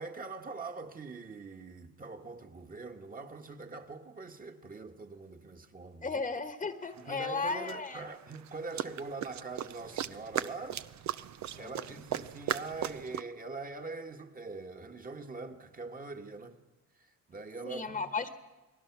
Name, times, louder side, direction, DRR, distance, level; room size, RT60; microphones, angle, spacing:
voice 1, 0.0-6.2 7.0-10.8 11.6-16.6 17.0-18.1, right 3 dB, 30° right, 1.9 m, -43 dB
voice 2, 6.0-8.0 11.6-11.9 17.6-18.3, left 4 dB, 25° left, 1.3 m, -35 dB
sound 1, 7.0-7.1 7.7-13.2, right 11 dB, 65° right, 0.8 m, -37 dB
28.5 x 19.5 x 6.2 m
cardioid pair, 90°, 30 cm